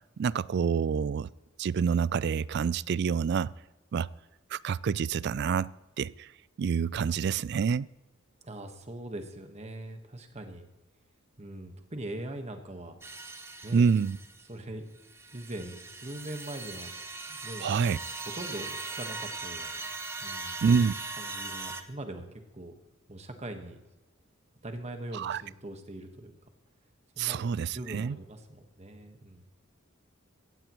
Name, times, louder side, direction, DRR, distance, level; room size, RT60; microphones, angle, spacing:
voice 1, 0.2-1.3 1.6-3.5 3.9-4.1 4.5-5.7 6.0-6.3 6.6-7.9 13.7-14.2 17.6-18.0 20.6-20.9 25.1-25.4 27.2-28.2, right 6 dB, 55° right, 21 dB, 0.3 m, -27 dB
voice 2, 8.4-10.7 11.4-13.0 13.6-13.9 14.5-14.8 15.3-16.9 17.3-17.9 18.2-19.9 20.2-20.6 21.2-22.2 22.5-22.7 23.1-23.8 24.6-26.3 27.2-27.4 27.7-29.5, right 1 dB, 35° right, 5 dB, 1.4 m, -41 dB
sound 1, 13.0-14.4 15.0-21.8, right 3 dB, 15° right, 0.8 m, -40 dB
15.5 x 15.5 x 3.1 m, 1.1 s
head